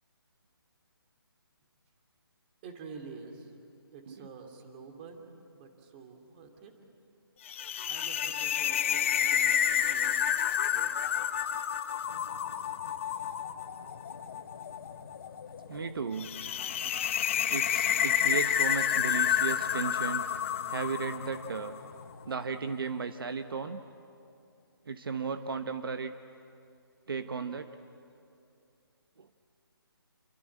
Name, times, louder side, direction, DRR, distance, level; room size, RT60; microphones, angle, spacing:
voice 1, 2.6-3.6 3.9-6.8 7.9-10.3 10.7-10.9, right 5 dB, 25° right, 4 dB, 2.8 m, -48 dB
sound 1, 7.5-21.8, left 9 dB, 30° left, 0.8 m, -30 dB
sound 2, 12.0-22.3, left 4 dB, 65° left, 2.4 m, -52 dB
voice 2, 15.7-16.3 17.5-20.2 20.7-21.7 22.2-23.8 24.9-26.1 27.1-27.7 29.2-29.3, right 5 dB, 65° right, 8 dB, 1.2 m, -35 dB
28.5 x 24.0 x 8.7 m, 2.5 s
hypercardioid pair, 160°, 13 cm